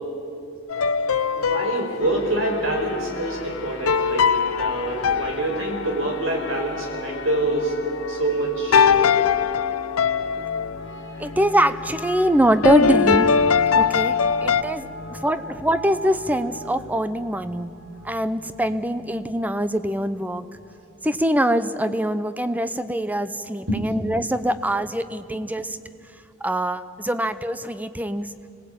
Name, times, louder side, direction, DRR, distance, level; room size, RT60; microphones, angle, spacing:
sound 1, 0.7-2.2 3.9-6.1 8.7-10.7 12.6-14.6, left 6 dB, 80° left, 0.6 m, -20 dB
voice 1, 1.3-4.3 4.6-7.8 8.1-9.2 14.1-14.3 14.8-15.4 23.7-23.8, right 1 dB, 65° right, 2 dB, 4.7 m, -26 dB
sound 2, 2.0-21.4, left 2 dB, 55° left, 2.0 m, -37 dB
voice 2, 11.2-13.3 13.7-17.7 18.0-20.5 21.0-25.8 26.4-28.3, equal, 10° right, 12 dB, 0.7 m, -23 dB
25.5 x 19.0 x 8.6 m, 2.5 s
head